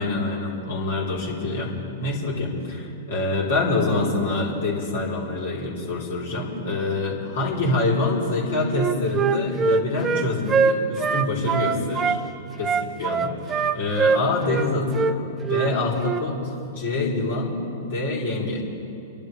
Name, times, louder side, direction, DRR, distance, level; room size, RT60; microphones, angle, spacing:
voice 1, 0.0-1.7 2.0-12.2 12.6-15.2 15.5-18.6, left 2 dB, 70° left, -4 dB, 3.9 m, -26 dB
Wind instrument woodwind instrument, 8.7-12.2 12.6-14.7 14.9-15.1 15.5-15.7 16.0-16.2, right 5 dB, 20° right, 0.7 m, -22 dB
30.0 x 11.5 x 3.5 m, 2.7 s
hypercardioid pair, 110°, 0 cm